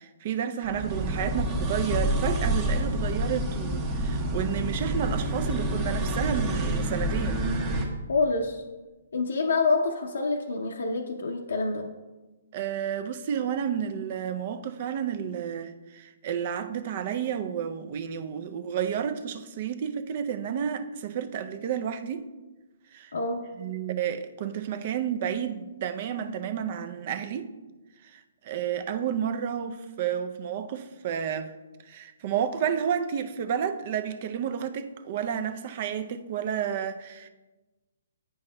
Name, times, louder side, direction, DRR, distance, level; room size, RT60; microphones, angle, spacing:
voice 1, 0.0-7.4 12.5-22.3 22.9-23.1 23.6-27.5 28.0-31.5 31.8-37.3, right 8 dB, 45° right, 0.4 m, -31 dB
sound 1, 0.6-7.9, right 1 dB, 25° right, 0.9 m, -28 dB
voice 2, 8.1-8.6 9.1-11.9 23.1-23.5, left 3 dB, 75° left, 0.6 m, -27 dB
8.7 x 5.5 x 2.2 m
hypercardioid pair, 140°, 0 cm